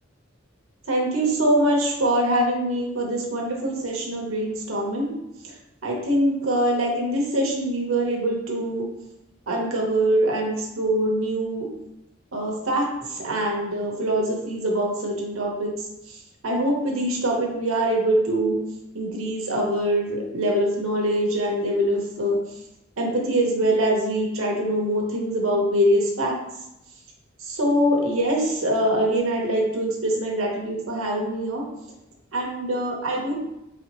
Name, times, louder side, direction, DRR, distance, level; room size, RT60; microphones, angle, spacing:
voice 1, 0.9-5.2 5.4-5.6 5.8-8.9 9.5-11.7 12.3-15.7 16.1-18.6 18.9-22.4 23.0-26.4 27.4-31.7 32.3-33.3, right 1 dB, 90° right, -2 dB, 0.9 m, -24 dB
4.3 x 3.4 x 2.9 m, 0.86 s
head